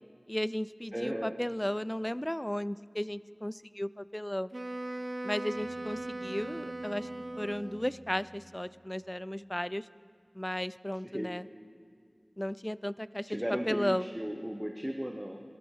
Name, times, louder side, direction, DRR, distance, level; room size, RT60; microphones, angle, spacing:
voice 1, 0.3-4.5 5.2-7.1 7.4-9.9 10.3-11.4 12.4-14.1, left 1 dB, 15° left, 18 dB, 0.3 m, -34 dB
voice 2, 0.9-1.3 11.0-11.3 13.3-15.4, equal, 10° right, 2 dB, 0.9 m, -35 dB
Wind instrument woodwind instrument, 4.5-8.1, right 1 dB, 50° right, 0.7 m, -39 dB
sound 1, 5.5-9.2, right 1 dB, 35° right, 1.4 m, -52 dB
21.5 x 13.0 x 4.8 m, 2.2 s
wide cardioid pair, 50°, 0 cm